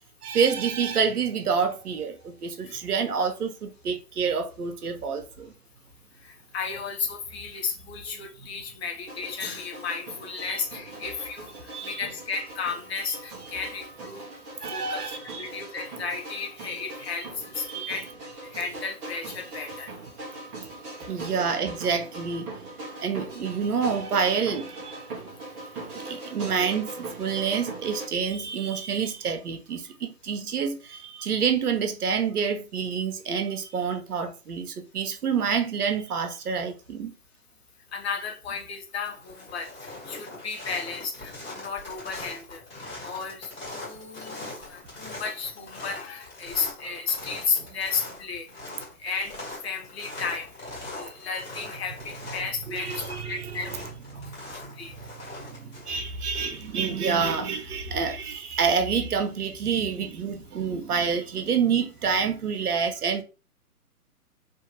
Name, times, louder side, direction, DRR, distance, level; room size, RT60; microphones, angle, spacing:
voice 1, 0.2-5.5 10.4-10.6 11.7-12.0 14.6-15.5 17.7-18.0 21.1-22.5 23.0-25.0 25.9-37.1 52.7-53.7 54.1-54.7 55.3-63.2, right 6 dB, 70° right, 0.9 m, -28 dB
voice 2, 6.2-11.5 11.8-14.2 14.7-17.3 17.6-18.1 18.5-19.9 37.9-42.6 43.0-48.5 49.0-50.5 50.9-53.7 54.5-54.9, left 5 dB, 40° left, 0.9 m, -33 dB
sound 1, 9.1-28.1, right 2 dB, 15° right, 0.8 m, -40 dB
sound 2, 38.2-38.6 38.9-56.8, left 2 dB, 15° left, 1.5 m, -41 dB
3.5 x 2.6 x 2.9 m
figure-of-eight pair, 140°, 47 cm